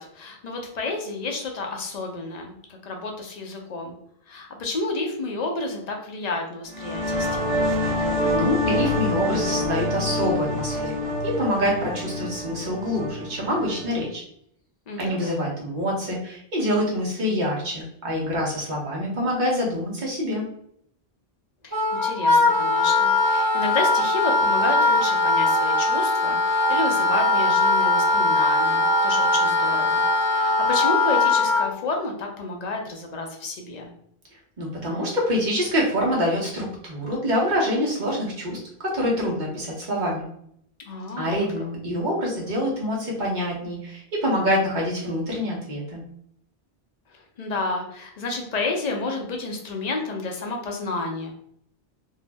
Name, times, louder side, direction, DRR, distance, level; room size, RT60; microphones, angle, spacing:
voice 1, 0.0-3.9 4.3-7.8 14.9-15.4 21.6-33.9 40.9-41.5 47.1-51.3, left 3 dB, 50° left, 1 dB, 0.6 m, -31 dB
sound 1, 6.7-14.1, left 1 dB, 75° right, 0.9 m, -26 dB
voice 2, 8.0-14.2 15.0-20.5 34.6-40.3 41.2-46.0, equal, 50° right, -3 dB, 1.0 m, -26 dB
Wind instrument woodwind instrument, 21.7-31.7, left 2 dB, 25° right, 0.5 m, -20 dB
2.7 x 2.0 x 3.3 m, 0.68 s
omnidirectional pair, 1.1 m